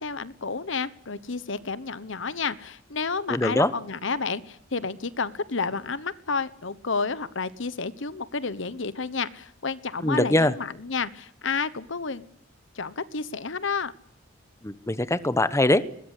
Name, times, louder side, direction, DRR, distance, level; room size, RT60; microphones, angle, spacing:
voice 1, 0.0-12.3 12.7-13.9, left 4 dB, 65° left, 16 dB, 1.1 m, -30 dB
voice 2, 3.3-3.7 10.0-10.5 14.6-15.8, left 1 dB, 15° left, 14 dB, 1.1 m, -22 dB
21.0 x 21.0 x 10.0 m, 0.70 s
head